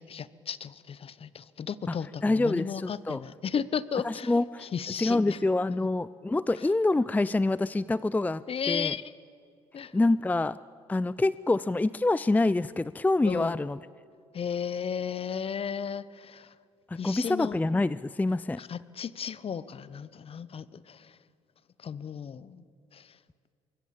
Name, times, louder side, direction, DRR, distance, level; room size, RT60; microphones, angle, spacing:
voice 1, 0.0-4.3 4.6-5.4 6.6-6.7 8.5-9.1 9.7-9.9 13.2-13.6 14.3-16.5 16.9-17.6 18.6-21.2 21.8-22.6 22.9-23.2, left 7 dB, 45° left, 18 dB, 1.0 m, -34 dB
voice 2, 2.2-3.2 4.0-4.7 5.0-8.4 8.7-8.9 9.9-10.6 10.9-13.8 16.9-18.6, left 2 dB, 10° left, 18 dB, 0.5 m, -26 dB
24.0 x 21.5 x 7.6 m, 2.3 s
hypercardioid pair, 55°, 14 cm